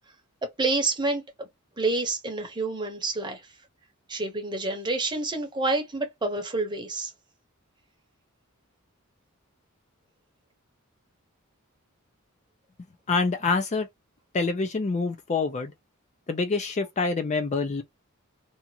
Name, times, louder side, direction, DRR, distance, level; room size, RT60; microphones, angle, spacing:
voice 1, 0.6-1.2 1.8-3.4 4.1-7.1, right 3 dB, 20° right, 0.8 m, -28 dB
voice 2, 13.1-13.9 14.3-15.7 16.3-17.8, left 4 dB, 30° left, 0.4 m, -26 dB
2.7 x 2.4 x 2.8 m
head